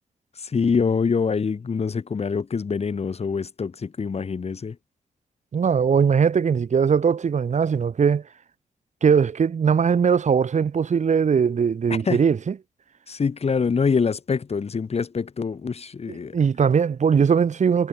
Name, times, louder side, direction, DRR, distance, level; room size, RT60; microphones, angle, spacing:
voice 1, 0.4-4.8 11.9-12.2 13.1-16.4, left 5 dB, 50° left, 6.3 m, -25 dB
voice 2, 5.5-8.2 9.0-12.5 16.3-17.9, right 6 dB, 65° right, 7.8 m, -20 dB
cardioid pair, 90°, 13 cm